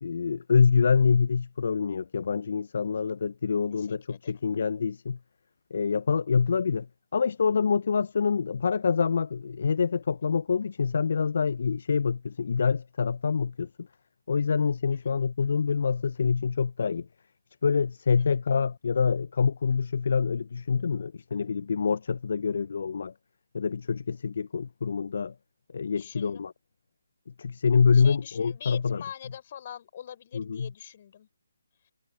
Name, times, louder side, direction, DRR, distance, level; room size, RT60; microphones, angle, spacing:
voice 1, 0.0-5.2 5.7-6.9 7.1-13.9 14.3-17.1 17.6-23.1 23.5-25.3 25.7-26.5 27.4-29.0 30.3-30.7, left 5 dB, 55° left, 0.6 m, -26 dB
voice 2, 3.7-4.4 14.9-15.1 18.2-18.4 26.0-26.5 27.9-31.3 31.8-31.9, left 9 dB, 40° left, 5.7 m, -44 dB
figure-of-eight pair, 150°, 0 cm